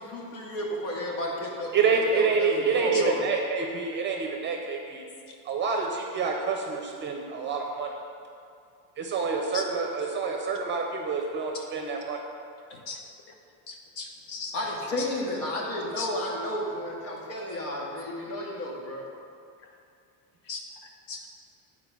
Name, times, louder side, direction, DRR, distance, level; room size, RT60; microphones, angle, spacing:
voice 1, 0.0-3.2 14.5-19.0, left 1 dB, 85° left, -2 dB, 2.1 m, -32 dB
voice 2, 1.7-5.0 5.5-7.9 9.0-12.2, right 5 dB, 25° right, 2 dB, 0.5 m, -27 dB
voice 3, 13.7-14.5 16.0-16.1 20.5-20.6 21.1-21.3, left 5 dB, 60° left, 2 dB, 1.2 m, -37 dB
8.9 x 4.8 x 6.0 m, 2.4 s
cardioid pair, 175°, 48 cm